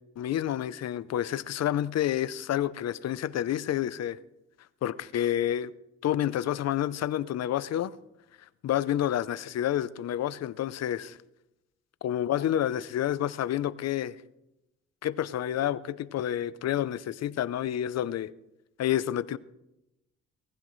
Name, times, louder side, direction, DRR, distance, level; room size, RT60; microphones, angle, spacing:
voice 1, 0.2-4.2 4.8-5.7 6.0-7.9 8.6-11.2 12.0-14.1 15.0-18.3 18.8-19.4, left 11 dB, 60° left, 0.6 m, -29 dB
18.5 x 15.0 x 3.2 m
cardioid pair, 90°, 30 cm